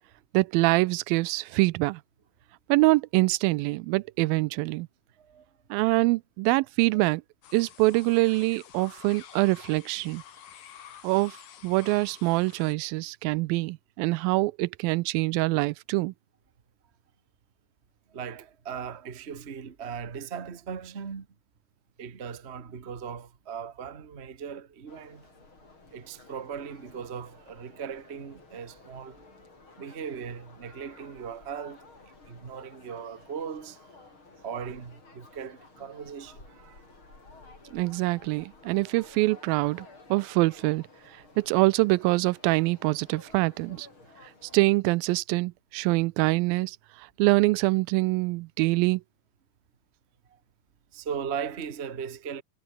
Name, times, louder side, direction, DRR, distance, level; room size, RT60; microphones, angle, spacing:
voice 1, 0.3-2.0 2.7-4.9 5.7-7.2 7.5-10.2 11.0-11.4 11.6-16.1 37.7-40.8 41.4-43.9 44.4-49.0, right 22 dB, 90° right, 2.4 m, -25 dB
sound 1, 7.4-12.7, left 9 dB, 70° left, 3.8 m, -49 dB
voice 2, 18.1-21.3 22.0-25.3 25.9-29.2 29.8-31.9 32.2-33.9 34.4-36.8 43.7-43.8 50.9-52.4, right 7 dB, 60° right, 0.6 m, -38 dB
sound 2, 24.9-44.7, left 3 dB, 35° left, 6.0 m, -53 dB
omnidirectional pair, 4.1 m